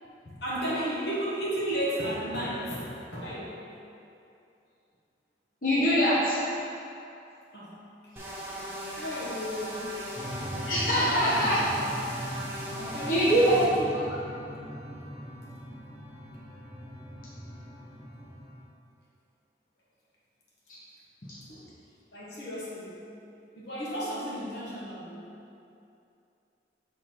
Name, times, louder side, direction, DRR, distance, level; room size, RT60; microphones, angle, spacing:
voice 1, 0.0-3.6 7.1-7.2 7.5-7.8 8.0-8.1 9.0-10.0 10.9-11.9 12.5-14.2 14.5-14.7 21.5-21.7 22.1-23.0 23.5-25.3, equal, 70° left, -6 dB, 1.4 m, -34 dB
voice 2, 5.6-6.3 10.7-11.6 13.1-13.6, equal, 50° left, -10 dB, 1.2 m, -23 dB
sound 1, 8.2-13.7, equal, 15° right, 0.9 m, -38 dB
sound 2, 10.2-18.6, equal, 30° left, 1.3 m, -40 dB
6.8 x 3.8 x 4.7 m, 2.6 s
head